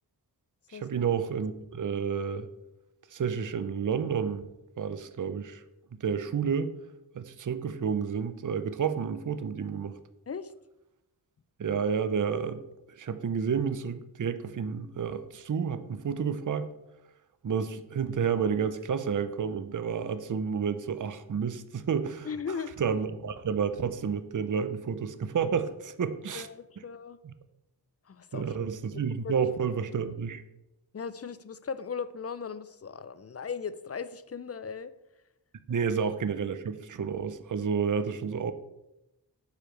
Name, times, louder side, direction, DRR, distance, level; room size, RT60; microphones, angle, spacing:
voice 1, 0.7-2.5 3.1-4.5 4.8-5.6 6.0-6.7 7.1-9.9 11.6-12.6 12.9-16.7 17.4-22.3 22.8-26.5 27.2-27.3 28.3-30.4 35.7-38.5, right 6 dB, 50° right, 11 dB, 0.5 m, -30 dB
voice 2, 22.2-22.7 26.3-27.2 28.1-28.6 28.9-29.3 30.9-34.9 35.8-35.9, left 6 dB, 40° left, 14 dB, 0.4 m, -38 dB
7.0 x 4.8 x 4.5 m, 0.92 s
wide cardioid pair, 55°, 41 cm